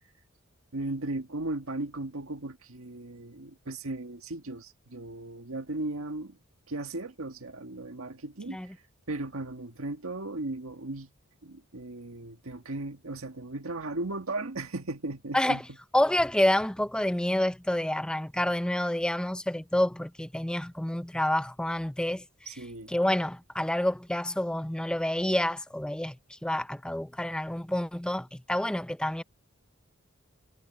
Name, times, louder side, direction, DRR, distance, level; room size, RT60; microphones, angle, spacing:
voice 1, 0.7-6.4 6.7-8.6 9.1-11.1 11.4-15.6 22.5-22.9, right 2 dB, 75° right, 1.8 m, -36 dB
voice 2, 15.3-15.6 15.9-22.2 22.9-29.2, left 1 dB, 5° left, 0.5 m, -28 dB
head